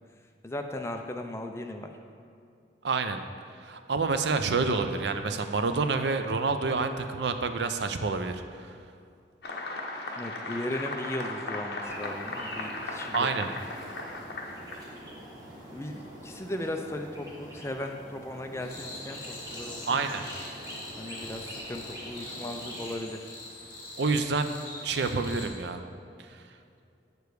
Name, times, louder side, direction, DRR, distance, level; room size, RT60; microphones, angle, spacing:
voice 1, 0.4-1.9 10.2-13.3 15.7-20.0 21.0-23.3, left 1 dB, 15° left, 4 dB, 0.4 m, -37 dB
voice 2, 2.8-3.2 3.5-8.7 13.1-13.5 19.9-20.2 24.0-24.5 24.8-25.8 26.3-26.4, right 4 dB, 75° right, 8 dB, 0.5 m, -28 dB
sound 1, 9.4-14.9, left 2 dB, 65° left, 0.9 m, -37 dB
sound 2, 11.8-22.9, equal, 20° right, 1.6 m, -45 dB
sound 3, 18.6-25.5, left 1 dB, 50° left, 2.1 m, -43 dB
8.1 x 6.9 x 4.7 m, 2.5 s
head